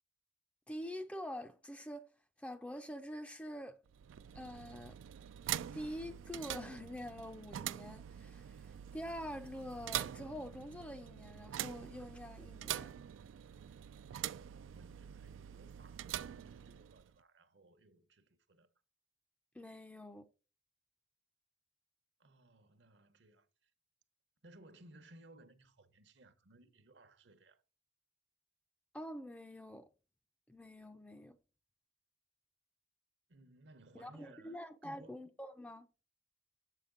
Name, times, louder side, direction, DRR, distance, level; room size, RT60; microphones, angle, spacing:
voice 1, 0.7-2.1 2.4-3.8 4.3-5.0 5.7-12.9 19.5-20.3 28.9-29.9 30.5-31.4 34.0-35.9, equal, 5° left, 0.4 m, -46 dB
sound 1, 3.9-17.2, right 11 dB, 90° right, 0.3 m, -45 dB
voice 2, 14.4-18.7 22.2-23.7 24.4-27.6 33.3-35.2, right 2 dB, 65° right, 0.9 m, -61 dB
7.8 x 5.7 x 3.7 m
head